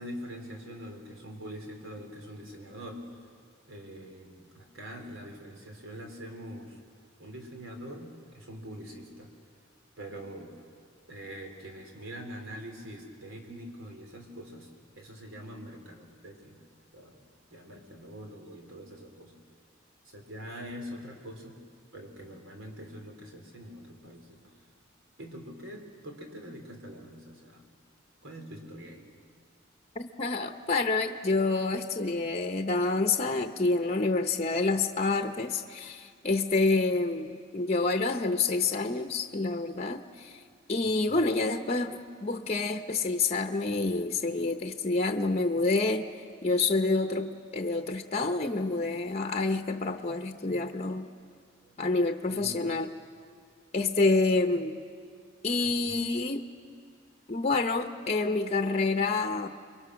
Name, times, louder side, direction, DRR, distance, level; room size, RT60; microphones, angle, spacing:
voice 1, 0.0-3.1 3.7-6.8 7.2-9.3 10.0-10.6 11.1-14.7 15.0-16.6 16.9-17.2 17.5-19.4 20.0-21.6 21.9-24.6 25.2-27.7 28.2-29.1 40.8-41.2 51.6-51.9 52.3-52.7 55.6-56.0, equal, 90° right, 3 dB, 3.7 m, -44 dB
voice 2, 29.9-40.4 40.7-46.1 46.4-51.1 51.8-52.9 53.7-54.8 55.4-56.5 57.3-59.5, left 3 dB, 35° left, 6 dB, 0.8 m, -28 dB
28.5 x 23.0 x 6.3 m, 2.1 s
head